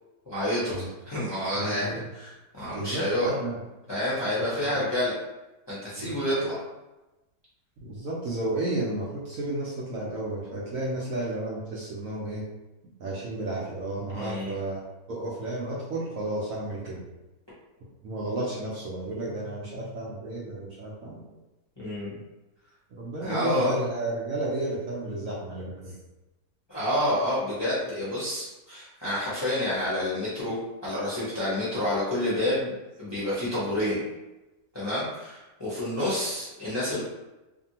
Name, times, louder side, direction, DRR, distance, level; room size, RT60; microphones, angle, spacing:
voice 1, 0.3-3.3 3.9-5.1 5.7-6.6 14.1-14.6 21.8-22.2 23.2-23.7 26.7-30.6 30.8-32.7 33.0-34.0 34.7-37.0, left 1 dB, 25° left, -10 dB, 0.6 m, -29 dB
voice 2, 1.5-2.0 2.7-3.6 4.5-4.8 6.0-6.5 7.8-12.5 13.0-14.8 15.1-17.0 18.0-21.2 22.9-26.0, right 2 dB, 65° right, -5 dB, 0.9 m, -32 dB
2.7 x 2.6 x 2.7 m, 1.0 s
omnidirectional pair, 1.8 m